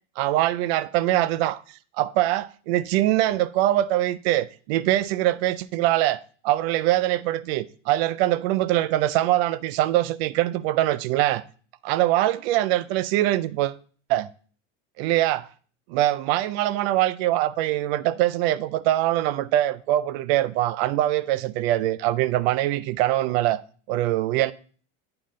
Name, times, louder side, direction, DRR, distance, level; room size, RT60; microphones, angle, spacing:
voice 1, 0.2-1.6 2.0-11.4 11.8-13.8 14.1-14.3 15.0-15.5 15.9-23.6 23.9-24.5, right 14 dB, 55° right, 0.5 m, -23 dB
8.8 x 5.6 x 3.7 m
cardioid pair, 175°, 37 cm